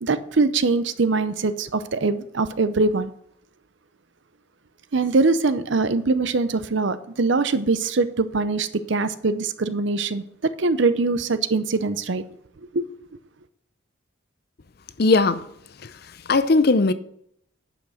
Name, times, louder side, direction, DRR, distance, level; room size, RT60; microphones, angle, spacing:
voice 1, 0.0-3.1 4.9-10.2 10.6-12.2 12.7-12.8, right 3 dB, 65° right, 0.6 m, -22 dB
voice 2, 15.0-15.4 15.8-15.9 16.3-16.9, left 3 dB, 50° left, 0.5 m, -18 dB
10.5 x 5.9 x 6.4 m
head